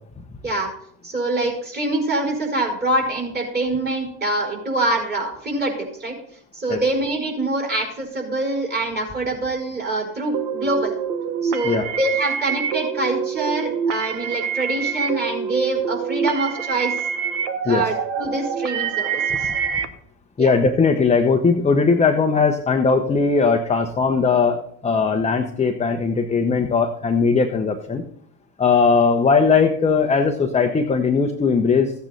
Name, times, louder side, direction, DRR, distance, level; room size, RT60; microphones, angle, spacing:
voice 1, 1.0-6.1 6.5-10.9 11.4-16.9 17.6-19.5 20.4-20.5, right 2 dB, 20° right, 0 dB, 4.4 m, -25 dB
sound 1, 10.3-19.9, right 7 dB, 65° right, 1.3 m, -26 dB
voice 2, 20.4-28.0 28.6-31.9, left 5 dB, 15° left, 3 dB, 0.9 m, -19 dB
15.0 x 8.7 x 4.1 m, 0.69 s
hypercardioid pair, 100°, 49 cm